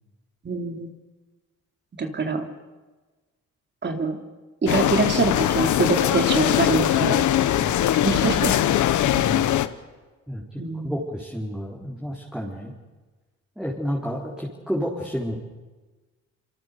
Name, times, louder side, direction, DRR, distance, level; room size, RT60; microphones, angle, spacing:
voice 1, 0.4-0.9 2.0-2.5 3.8-4.2 4.6-7.2 8.0-8.6 10.6-10.9, right 3 dB, 35° right, 4 dB, 3.0 m, -24 dB
sound 1, 4.7-9.7, left 12 dB, 75° left, 1.2 m, -21 dB
voice 2, 9.1-9.4 10.3-12.7 13.6-15.4, equal, ahead, -3 dB, 4.4 m, -31 dB
26.0 x 25.5 x 7.0 m, 1.3 s
cardioid pair, 90°, 30 cm